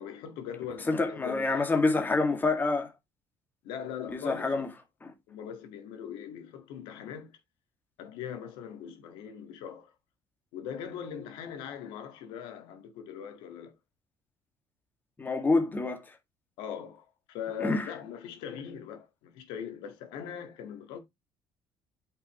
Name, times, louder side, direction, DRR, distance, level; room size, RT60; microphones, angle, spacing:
voice 1, 0.0-1.8 3.6-4.7 5.3-7.4 8.0-9.9 10.5-13.8 16.6-21.0, left 8 dB, 90° left, 1.9 m, -41 dB
voice 2, 0.9-2.9 4.1-4.7 5.0-5.1 15.2-16.0 17.6-17.8, left 3 dB, 20° left, 2.0 m, -27 dB
8.3 x 5.7 x 3.1 m
cardioid pair, 100°, 9 cm